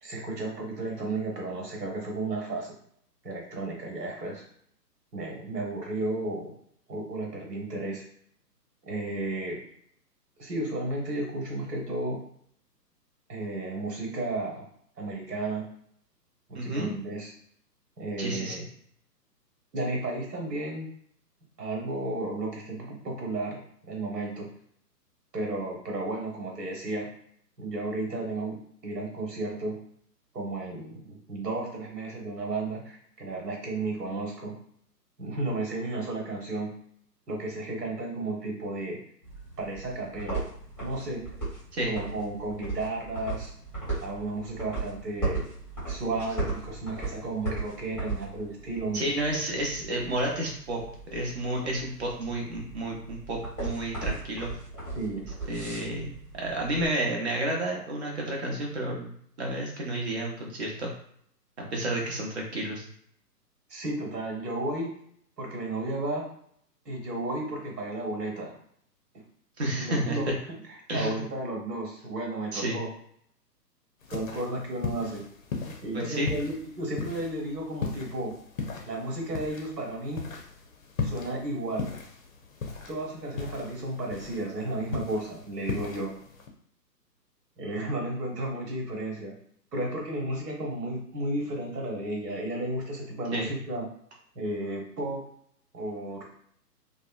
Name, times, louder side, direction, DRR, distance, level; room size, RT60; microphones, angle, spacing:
voice 1, 0.0-2.7 3.2-4.4 5.1-6.5 6.9-8.0 8.8-9.6 10.4-12.2 13.3-14.7 15.0-15.6 16.5-17.3 18.0-18.6 19.7-20.9 21.6-23.6 23.9-24.5 25.3-27.1 27.6-29.8 30.3-34.5 35.2-36.7 37.3-39.0 39.6-40.4 40.8-41.2 41.9-43.5 44.0-45.5 45.9-49.1 54.9-55.2 63.7-64.9 65.4-66.2 66.8-68.5 69.8-70.3 70.9-72.9 74.1-75.2 75.8-78.3 78.8-80.2 81.0-81.9 82.9-86.1 87.6-89.3 89.7-93.8 94.3-95.2 95.7-96.2, right 2 dB, 70° right, -1 dB, 1.2 m, -33 dB
voice 2, 16.5-16.9 18.2-18.6 41.7-41.9 48.9-50.8 51.1-54.5 55.5-56.1 56.4-59.1 59.4-60.9 61.7-62.9 69.6-70.3 70.9-71.2 72.5-72.8 75.9-76.3 93.3-93.5, right 1 dB, 40° right, -1 dB, 0.8 m, -31 dB
sound 1, 39.2-56.9, right 3 dB, ahead, 0.9 m, -37 dB
sound 2, 74.0-86.5, left 4 dB, 55° left, 0.6 m, -38 dB
2.8 x 2.1 x 2.4 m, 0.65 s
figure-of-eight pair, 135°, 50 cm